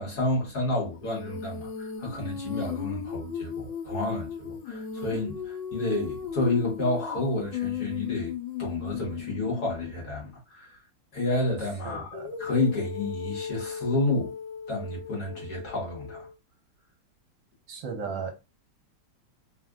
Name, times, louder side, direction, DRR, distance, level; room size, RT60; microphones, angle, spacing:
voice 1, 0.0-10.8 11.1-14.3 14.7-16.3, left 2 dB, 55° left, 1.6 m, -30 dB
Female singing, 1.0-9.9 12.1-16.3, left 7 dB, 70° left, 1.3 m, -36 dB
voice 2, 11.8-12.3 17.7-18.3, right 5 dB, 70° right, 1.4 m, -35 dB
3.6 x 2.5 x 2.3 m
omnidirectional pair, 2.3 m